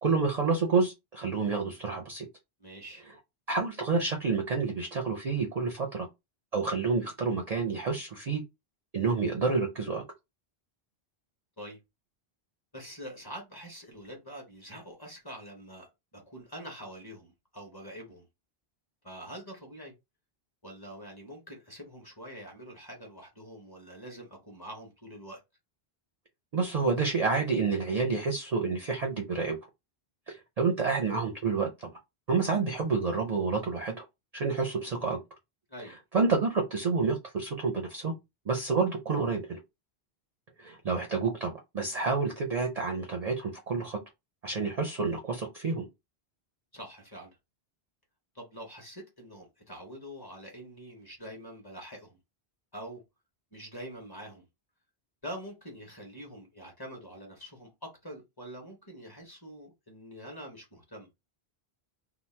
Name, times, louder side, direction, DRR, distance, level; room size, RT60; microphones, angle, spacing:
voice 1, 0.0-2.3 3.5-6.1 6.5-8.4 8.9-10.0 26.5-29.6 30.3-31.9 32.3-34.1 34.3-35.2 36.1-38.1 38.5-39.6 40.6-44.0 44.4-45.9, right 4 dB, 50° right, 0.5 m, -29 dB
voice 2, 2.6-3.0 11.6-11.8 12.7-18.3 19.0-19.9 20.6-25.4 35.7-35.9 46.7-47.3 48.3-52.2 52.7-53.0 53.5-54.4 55.2-61.1, equal, 25° left, 0.9 m, -45 dB
2.8 x 2.1 x 3.2 m
omnidirectional pair, 1.1 m